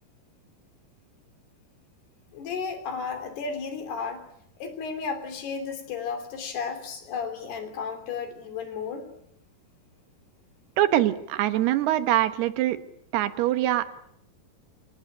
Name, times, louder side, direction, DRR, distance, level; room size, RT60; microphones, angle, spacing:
voice 1, 2.3-4.2 4.6-9.1, left 5 dB, 80° left, 8 dB, 5.2 m, -33 dB
voice 2, 10.8-12.8 13.1-13.9, right 13 dB, 80° right, 11 dB, 3.2 m, -23 dB
27.0 x 17.5 x 8.7 m, 0.74 s
omnidirectional pair, 4.6 m